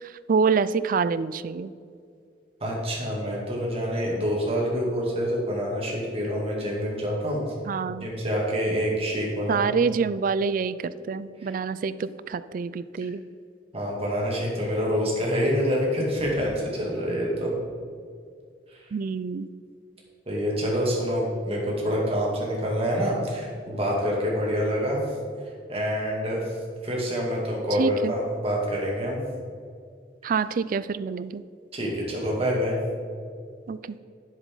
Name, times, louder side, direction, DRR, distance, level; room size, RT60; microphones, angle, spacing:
voice 1, 0.3-1.7 7.7-8.1 9.5-13.2 18.9-19.5 27.8-28.1 30.2-31.4 33.7-34.0, right 5 dB, 50° right, 15 dB, 0.3 m, -26 dB
voice 2, 2.6-7.4 7.9-9.7 11.4-11.6 13.7-17.5 20.3-25.0 25.7-26.4 26.8-29.2 31.7-32.8, equal, 35° right, -3 dB, 2.4 m, -26 dB
10.5 x 7.3 x 3.8 m, 2.2 s
head